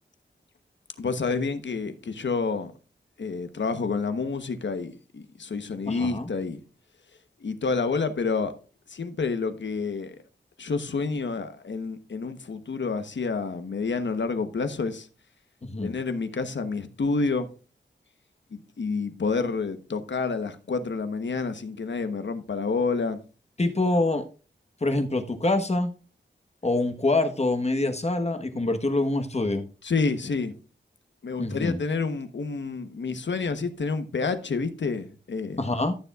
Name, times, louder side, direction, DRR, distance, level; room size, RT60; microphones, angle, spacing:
voice 1, 1.0-2.7 3.2-6.6 7.4-8.5 8.9-10.2 10.6-15.1 15.8-17.5 18.5-23.2 29.8-30.5 31.2-35.6, left 4 dB, 70° left, 1.1 m, -29 dB
voice 2, 5.9-6.3 15.6-16.0 23.6-24.2 24.8-25.9 26.6-29.7 31.4-31.8 35.6-35.9, left 2 dB, 35° left, 1.2 m, -25 dB
14.0 x 6.9 x 2.4 m
wide cardioid pair, 75°, 19 cm